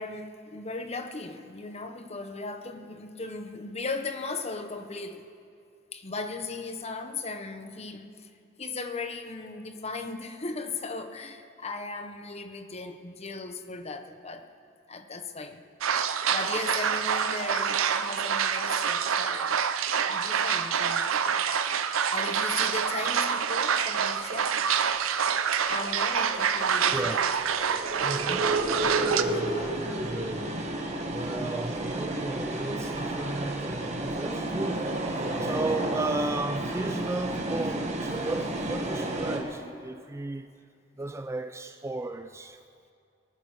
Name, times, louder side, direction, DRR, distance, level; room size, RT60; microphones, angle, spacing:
voice 1, 0.0-5.2 5.9-8.3 8.6-14.5 14.9-15.6 16.0-19.6 20.1-21.2 22.1-24.8 25.7-27.3, left 3 dB, 30° left, 0.9 m, -37 dB
sound 1, 15.8-29.2, right 7 dB, 85° right, 0.6 m, -27 dB
sound 2, 25.3-39.4, right 1 dB, 35° right, 1.6 m, -32 dB
voice 2, 26.9-27.3 28.0-28.6 28.9-30.6 31.1-40.5 41.0-42.6, right 2 dB, 15° right, 0.3 m, -34 dB
23.0 x 10.5 x 4.8 m
head